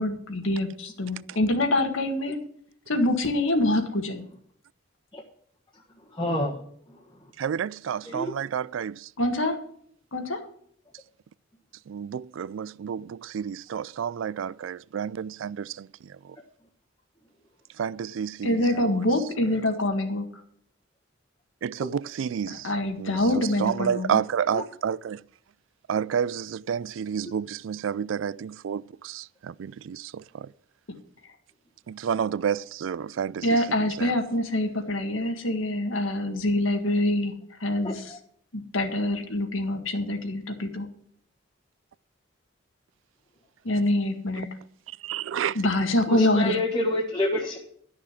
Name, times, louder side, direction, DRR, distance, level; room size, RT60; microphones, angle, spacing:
voice 1, 0.0-2.4 2.9-4.2 9.2-9.6 10.1-10.4 18.4-20.3 22.5-24.2 33.4-37.3 37.6-38.2 38.5-40.9 43.6-44.5 45.5-46.6, left 1 dB, 85° left, 1.8 m, -25 dB
voice 2, 6.1-6.6 8.0-8.3 21.8-21.9 24.5-24.6 37.8-38.2 46.1-47.6, left 1 dB, 20° left, 1.4 m, -28 dB
voice 3, 7.4-9.1 11.9-15.9 17.8-19.0 21.6-22.7 23.0-25.2 25.9-30.5 31.9-33.5 34.0-34.1 45.0-45.6, right 8 dB, 75° right, 0.3 m, -30 dB
12.0 x 6.7 x 7.2 m
head